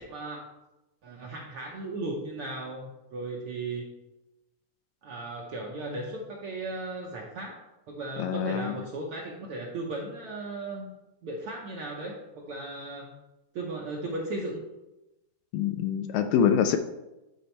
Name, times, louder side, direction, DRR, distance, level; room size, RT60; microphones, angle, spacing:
voice 1, 0.1-0.4 1.0-3.9 5.0-10.9 11.2-13.1 13.5-14.6, right 2 dB, 80° right, -1 dB, 1.2 m, -36 dB
voice 2, 8.2-8.8 15.5-16.8, left 8 dB, 80° left, 8 dB, 1.8 m, -25 dB
9.4 x 4.0 x 4.4 m, 0.99 s
omnidirectional pair, 3.6 m